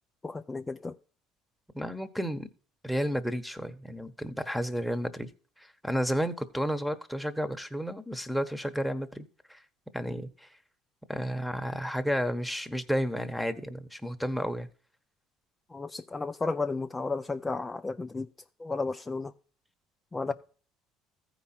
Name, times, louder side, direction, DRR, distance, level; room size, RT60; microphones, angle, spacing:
voice 1, 0.2-1.0 15.7-18.3 18.6-19.3 20.1-20.3, left 3 dB, 20° left, 0.5 m, -33 dB
voice 2, 1.7-2.5 2.8-5.3 5.6-9.6 9.9-10.5 11.1-14.7, equal, ahead, 1.2 m, -32 dB
14.5 x 4.9 x 4.3 m
supercardioid pair, 85°, 0 cm